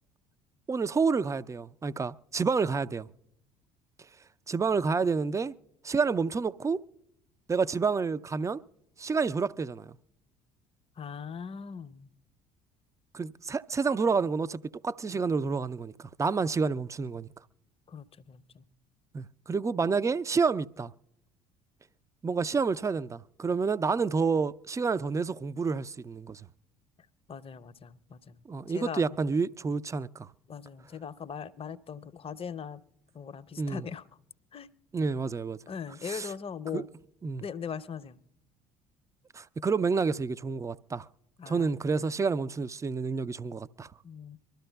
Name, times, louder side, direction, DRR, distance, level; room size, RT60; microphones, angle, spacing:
voice 1, 0.7-3.1 4.5-5.5 5.8-6.8 7.5-8.6 9.0-10.0 13.1-17.3 19.1-20.9 22.2-26.4 28.5-30.3 33.6-33.8 34.9-35.6 36.0-36.3 36.7-36.8 37.2-37.4 39.3-41.1 41.5-43.9, right 5 dB, 15° right, 0.5 m, -29 dB
voice 2, 11.0-12.1 17.9-18.6 27.3-29.0 30.5-32.8 33.1-34.0 34.5-34.7 35.7-36.9 37.4-38.2 41.4-41.8 44.0-44.4, left 7 dB, 30° left, 0.7 m, -40 dB
24.5 x 13.0 x 2.3 m
figure-of-eight pair, 55°, 20 cm